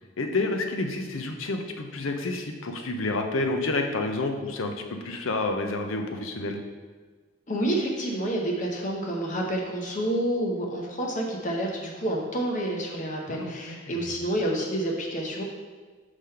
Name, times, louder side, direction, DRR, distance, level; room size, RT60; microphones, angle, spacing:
voice 1, 0.2-6.6 13.3-13.9, left 2 dB, 75° left, 5 dB, 0.7 m, -29 dB
voice 2, 7.5-15.4, right 1 dB, 35° left, 0 dB, 0.8 m, -29 dB
4.9 x 3.8 x 5.6 m, 1.4 s
head